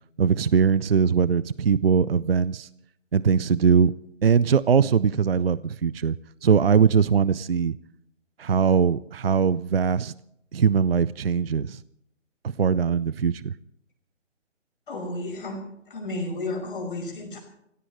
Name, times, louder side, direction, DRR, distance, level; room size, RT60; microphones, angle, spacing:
voice 1, 0.2-2.7 3.1-3.9 4.2-6.2 6.4-7.8 8.4-10.1 10.5-11.8 12.4-13.5, right 6 dB, 50° right, 19 dB, 0.5 m, -21 dB
voice 2, 14.9-15.6 15.9-17.4, left 2 dB, 45° left, 2 dB, 5.4 m, -32 dB
26.0 x 17.0 x 3.2 m, 0.78 s
figure-of-eight pair, 150°, 37 cm